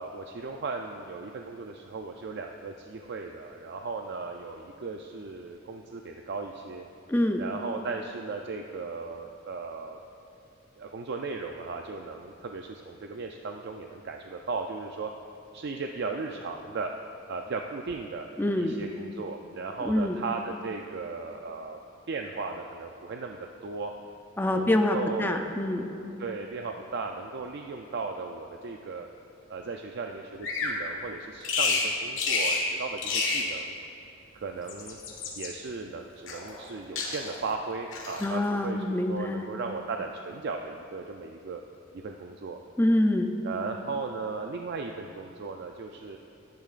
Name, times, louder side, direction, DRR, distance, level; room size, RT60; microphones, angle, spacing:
voice 1, 0.0-6.8 7.4-10.0 10.8-15.1 15.5-16.9 17.3-18.3 18.6-21.8 22.1-23.9 24.5-25.4 26.2-29.1 29.5-33.8 34.3-35.0 35.3-41.6 41.9-42.6 43.4-46.2, right 4 dB, 60° right, 3 dB, 0.4 m, -36 dB
voice 2, 7.1-7.4 18.4-18.8 19.8-20.2 24.4-25.9 38.2-39.4 42.8-43.3, left 1 dB, 10° left, 4 dB, 0.4 m, -25 dB
Bird vocalization bird call bird song, 30.4-30.8 31.4-31.9 32.2-32.7 33.0-33.5 34.5-35.5 36.3-36.7 37.0-37.4 37.9-38.3, left 4 dB, 85° left, 1.5 m, -29 dB
13.5 x 10.5 x 2.5 m, 2.8 s
head